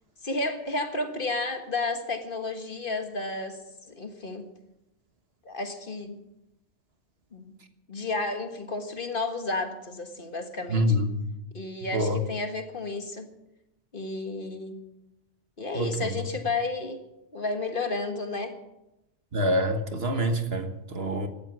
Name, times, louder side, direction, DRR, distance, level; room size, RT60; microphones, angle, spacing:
voice 1, 0.2-3.6 3.9-4.4 5.5-6.2 7.3-7.5 7.9-11.0 11.5-13.3 13.9-14.8 15.6-17.0 17.3-18.5, left 3 dB, 50° left, 1.7 m, -32 dB
voice 2, 10.7-11.2 11.9-12.2 15.7-16.1 19.3-21.3, equal, 60° right, 1.7 m, -26 dB
16.5 x 13.0 x 6.1 m
omnidirectional pair, 1.2 m